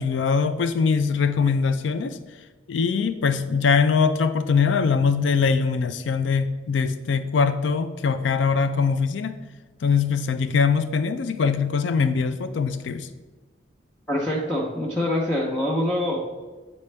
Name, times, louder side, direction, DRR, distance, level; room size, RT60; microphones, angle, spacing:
voice 1, 0.0-2.2 2.7-9.4 9.8-13.1, left 5 dB, 85° left, 11 dB, 0.4 m, -22 dB
voice 2, 14.1-16.2, left 1 dB, 10° left, -5 dB, 0.8 m, -24 dB
8.3 x 4.2 x 3.3 m, 1.3 s
head